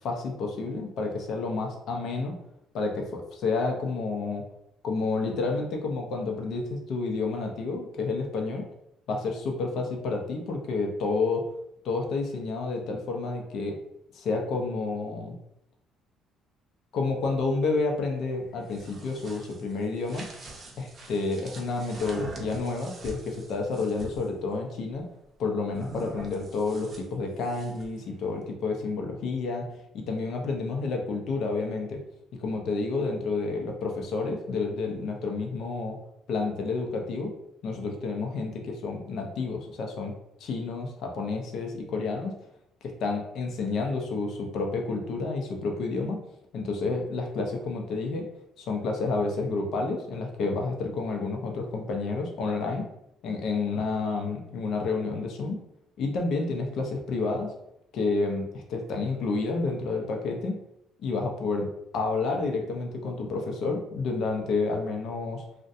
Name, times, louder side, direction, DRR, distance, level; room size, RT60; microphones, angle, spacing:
voice 1, 0.0-2.4 2.7-4.4 4.8-8.6 9.1-11.5 11.8-13.7 14.1-15.4 16.9-20.3 20.8-25.0 25.4-29.7 29.9-32.0 32.4-36.0 36.3-37.3 37.6-40.1 40.4-42.3 43.0-46.2 46.5-48.3 48.6-52.9 53.2-55.6 56.0-57.5 57.9-60.6 61.0-61.7 61.9-65.4, left 3 dB, 65° left, 2 dB, 0.5 m, -30 dB
sound 1, 18.5-24.3 25.7-28.0, right 2 dB, 40° right, 0.5 m, -44 dB
2.4 x 2.1 x 2.6 m, 0.80 s
cardioid pair, 95°, 0 cm